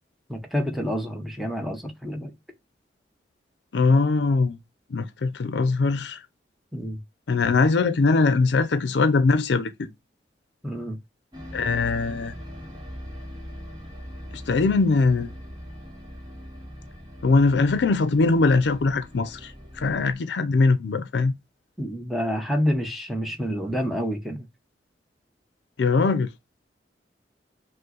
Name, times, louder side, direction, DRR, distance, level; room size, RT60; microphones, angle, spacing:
voice 1, 0.3-2.3 6.7-7.0 10.6-11.0 21.8-24.5, equal, ahead, 0.8 m, -28 dB
voice 2, 3.7-4.6 4.9-6.2 7.3-9.7 11.5-12.3 14.3-15.3 17.2-21.3 25.8-26.3, left 3 dB, 80° left, 0.5 m, -21 dB
sound 1, 11.3-20.1, equal, 20° right, 1.1 m, -41 dB
5.3 x 2.1 x 3.8 m
head